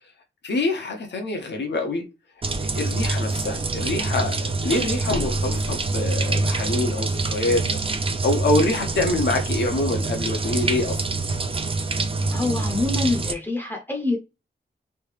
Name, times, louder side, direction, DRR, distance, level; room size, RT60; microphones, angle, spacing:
voice 1, 0.4-2.0 2.6-7.8 8.2-11.0, left 2 dB, 70° left, 0.8 m, -25 dB
Sliding Book, 1.8-1.9 2.5-2.6 5.1-6.5 6.9-7.0, left 2 dB, 90° left, 1.3 m, -36 dB
sound 1, 2.4-13.3, right 3 dB, 30° right, 0.4 m, -25 dB
voice 2, 12.3-14.2, left 2 dB, 10° left, 0.7 m, -25 dB
3.3 x 2.7 x 3.2 m
wide cardioid pair, 125°, 19 cm